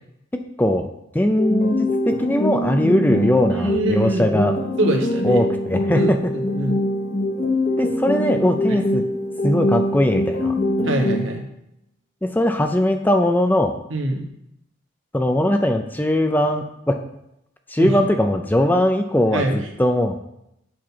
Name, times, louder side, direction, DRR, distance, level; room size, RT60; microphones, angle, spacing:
voice 1, 0.3-0.9 1.1-4.6 5.2-6.3 7.8-9.1 9.4-10.6 12.2-13.7 15.1-17.0 17.7-20.2, left 1 dB, 10° left, 6 dB, 0.4 m, -20 dB
sound 1, 1.4-11.4, left 1 dB, 35° left, 0.8 m, -23 dB
voice 2, 3.5-4.4 4.8-5.4 5.9-6.7 8.7-8.8 10.8-11.4 13.9-14.3 17.8-17.9 19.3-19.6, right 2 dB, 75° right, 1 dB, 1.5 m, -24 dB
7.6 x 4.5 x 5.5 m, 0.80 s
head